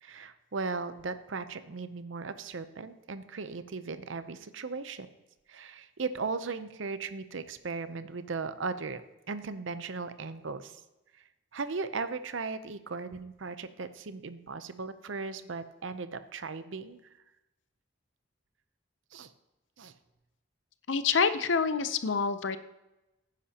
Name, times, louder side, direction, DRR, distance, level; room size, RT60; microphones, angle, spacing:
voice 1, 0.0-5.1 5.5-9.0 9.3-10.8 11.1-11.2 11.5-17.0 19.1-19.3 19.8-19.9, right 4 dB, 75° right, 12 dB, 0.6 m, -37 dB
voice 2, 20.9-22.6, left 5 dB, 70° left, 12 dB, 0.6 m, -27 dB
15.5 x 10.0 x 2.9 m, 1.0 s
head